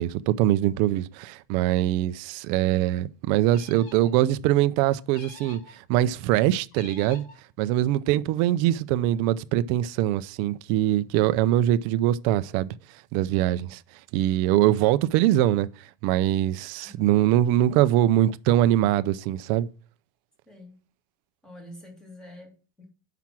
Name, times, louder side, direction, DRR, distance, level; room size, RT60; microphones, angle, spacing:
voice 1, 0.0-7.2 7.6-12.7 13.1-13.8 14.1-15.7 16.0-19.7, right 13 dB, 45° right, 0.4 m, -23 dB
sound 1, 3.5-4.1 5.1-5.8 6.7-7.4, left 3 dB, 65° left, 2.9 m, -47 dB
voice 2, 13.4-13.8 16.8-17.2 20.5-20.7 21.4-22.9, left 1 dB, 5° left, 2.2 m, -47 dB
7.3 x 5.8 x 6.0 m
supercardioid pair, 165°, 10 cm